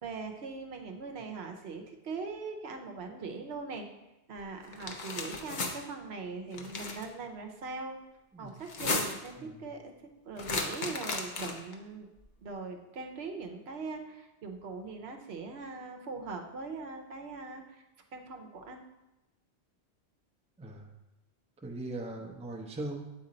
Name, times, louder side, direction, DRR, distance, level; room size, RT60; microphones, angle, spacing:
voice 1, 0.0-3.9 4.3-8.0 8.4-9.9 10.2-12.1 12.4-17.8 18.1-18.8, right 4 dB, 70° right, 4 dB, 1.0 m, -41 dB
sound 1, 4.7-5.7 6.5-7.1 8.6-9.3 10.4-11.7, left 3 dB, 50° left, 0.8 m, -34 dB
voice 2, 20.6-20.9 21.6-23.0, right 2 dB, 10° right, 0 dB, 0.5 m, -40 dB
8.1 x 4.3 x 3.8 m, 0.98 s
omnidirectional pair, 1.1 m